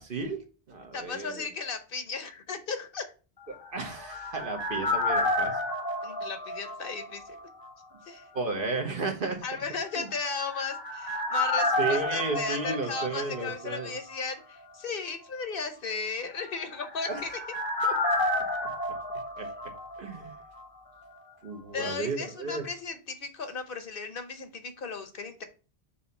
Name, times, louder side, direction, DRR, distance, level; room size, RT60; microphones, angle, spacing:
voice 1, 0.0-1.5 3.5-5.6 8.3-9.4 9.9-10.1 11.8-13.9 17.1-17.2 17.8-18.0 19.4-19.5 20.0-20.4 21.4-22.7, right 3 dB, 60° right, 4 dB, 1.3 m, -33 dB
voice 2, 0.9-3.1 6.0-7.4 8.1-8.3 9.4-17.4 21.7-25.4, left 4 dB, 65° left, 8 dB, 1.0 m, -35 dB
sound 1, 3.5-7.4 7.6-7.7 10.1-13.9 14.1-14.2 16.5-20.3 20.6-20.7, left 2 dB, 25° left, 0.8 m, -30 dB
6.9 x 2.8 x 5.3 m, 0.35 s
omnidirectional pair, 1.0 m